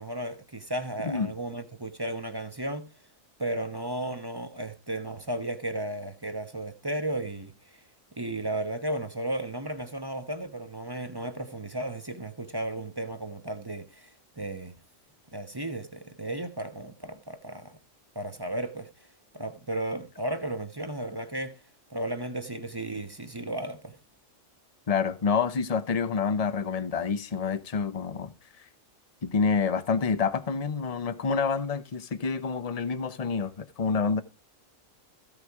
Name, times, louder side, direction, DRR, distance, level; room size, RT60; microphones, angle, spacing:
voice 1, 0.0-2.9 3.4-7.8 8.2-14.7 15.3-17.8 18.1-19.1 19.3-21.6 21.9-24.0, right 1 dB, 20° right, 1.0 m, -34 dB
voice 2, 1.0-1.3 24.9-28.3 29.2-34.2, left 5 dB, 35° left, 0.8 m, -28 dB
15.5 x 5.2 x 4.7 m
omnidirectional pair, 1.3 m